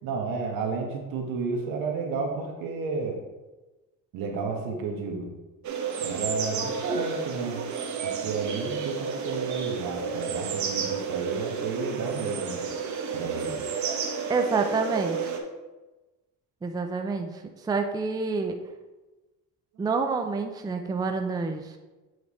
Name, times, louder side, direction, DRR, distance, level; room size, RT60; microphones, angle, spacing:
voice 1, 0.0-3.2 4.1-5.3 6.0-7.6 8.0-12.6 13.1-13.7, right 4 dB, 85° right, 1 dB, 1.3 m, -32 dB
sound 1, 5.6-15.4, right 6 dB, 60° right, 0.9 m, -31 dB
voice 2, 14.3-15.3 16.6-18.5 19.8-21.8, right 4 dB, 10° right, 5 dB, 0.4 m, -28 dB
8.0 x 3.4 x 4.1 m, 1.1 s
cardioid pair, 135°, 34 cm